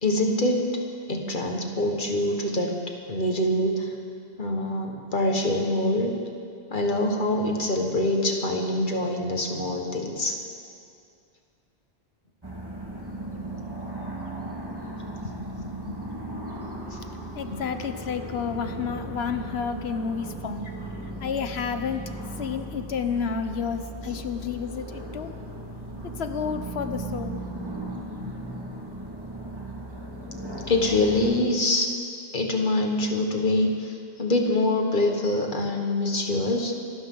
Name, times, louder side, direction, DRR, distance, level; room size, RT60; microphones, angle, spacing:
voice 1, 0.0-0.8 1.1-2.8 3.1-3.9 4.4-6.2 6.7-10.4 30.7-31.9 32.3-36.7, left 1 dB, 50° left, 2 dB, 1.7 m, -25 dB
sound 1, 12.4-31.3, right 1 dB, 20° right, 2.0 m, -37 dB
voice 2, 14.9-20.7 21.2-25.3 26.2-27.6 28.2-28.6, left 6 dB, 80° left, 8 dB, 1.1 m, -32 dB
26.5 x 12.5 x 3.9 m, 2.3 s
omnidirectional pair, 1.1 m